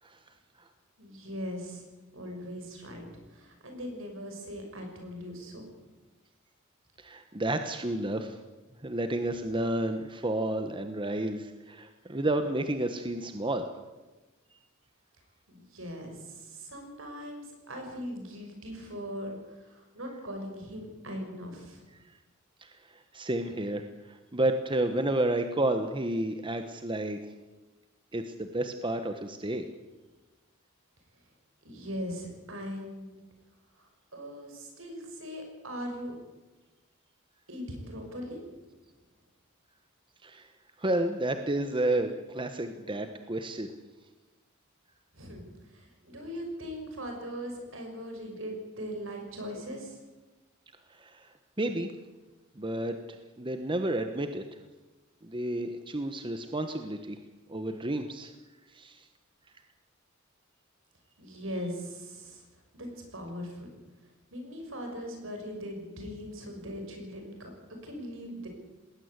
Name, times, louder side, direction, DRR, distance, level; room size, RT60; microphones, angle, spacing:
voice 1, 1.0-1.8 2.1-5.7 15.5-21.9 31.6-33.2 33.8-36.2 37.5-38.4 45.1-50.0 61.2-62.4 62.7-63.7 64.3-67.5 67.8-68.5, equal, 70° right, 3 dB, 6.5 m, -40 dB
voice 2, 7.0-8.4 8.8-13.6 22.6-22.7 23.1-27.2 28.1-29.7 40.2-40.5 40.8-43.7 51.0-51.3 51.6-51.9 52.6-54.4 55.2-57.2 57.5-58.3 58.7-59.0, right 1 dB, 25° right, 7 dB, 1.2 m, -31 dB
19.5 x 18.5 x 8.2 m, 1.2 s
head